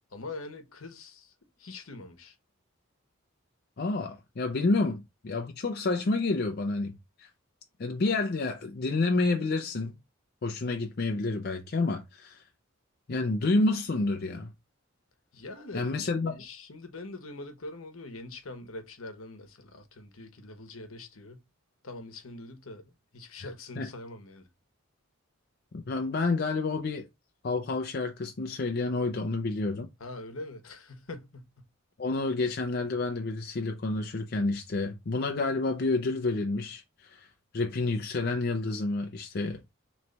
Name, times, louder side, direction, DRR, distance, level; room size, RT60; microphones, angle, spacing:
voice 1, 0.1-1.3 1.6-2.3 15.3-21.4 21.8-22.8 23.1-24.5 30.0-31.5, left 2 dB, 80° left, 1.0 m, -43 dB
voice 2, 3.8-7.3 7.8-10.0 10.4-12.4 13.1-14.5 15.7-16.3 23.4-23.5 23.8-23.9 25.7-27.1 27.4-29.9 32.0-37.3 37.5-39.6, left 3 dB, 50° left, 0.5 m, -29 dB
4.0 x 3.1 x 3.2 m
head